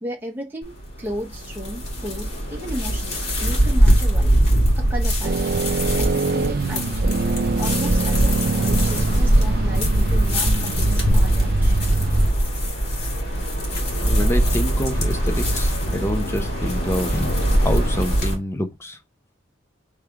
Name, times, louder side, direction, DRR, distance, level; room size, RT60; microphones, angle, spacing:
voice 1, 0.0-4.4 4.8-5.4 6.0-7.2 7.6-11.7, equal, 10° right, 0.9 m, -34 dB
sound 1, 0.6-18.3, equal, 55° left, 2.3 m, -21 dB
sound 2, 5.2-12.3, right 4 dB, 50° right, 0.3 m, -25 dB
voice 2, 14.0-19.0, left 1 dB, 15° left, 0.6 m, -27 dB
3.5 x 3.3 x 4.6 m
head